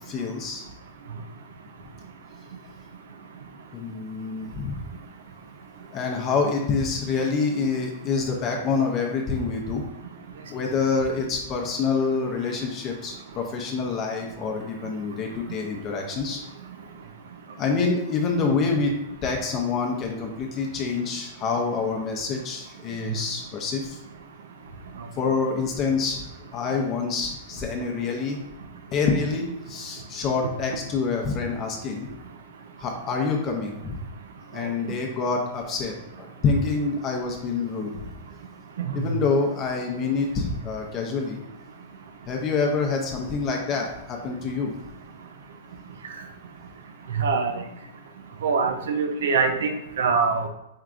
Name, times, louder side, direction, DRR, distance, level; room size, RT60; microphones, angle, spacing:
voice 1, 0.1-0.6 3.7-4.8 5.9-9.8 10.5-16.4 17.6-19.0 19.2-24.0 25.1-26.2 26.5-28.4 28.9-32.1 32.8-34.0 34.5-38.0 38.9-41.4 42.3-44.7, left 4 dB, 30° left, 1 dB, 0.6 m, -26 dB
voice 2, 47.2-47.5 48.4-50.5, right 5 dB, 85° right, 7 dB, 0.6 m, -23 dB
4.5 x 3.5 x 2.5 m, 0.88 s
hypercardioid pair, 145°, 0 cm